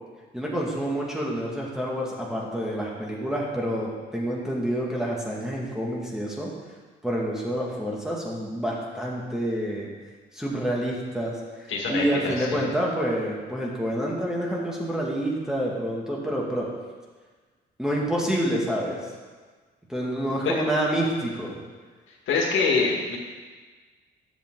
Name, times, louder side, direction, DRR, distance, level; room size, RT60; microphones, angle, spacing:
voice 1, 0.3-6.5 7.0-9.9 10.3-11.3 11.9-16.7 17.8-19.0 19.9-21.6, right 1 dB, 5° right, -4 dB, 2.2 m, -28 dB
voice 2, 11.7-12.6 20.4-20.5 22.3-23.2, left 4 dB, 80° left, -2 dB, 1.9 m, -25 dB
10.5 x 7.2 x 3.9 m, 1.4 s
cardioid pair, 90°, 20 cm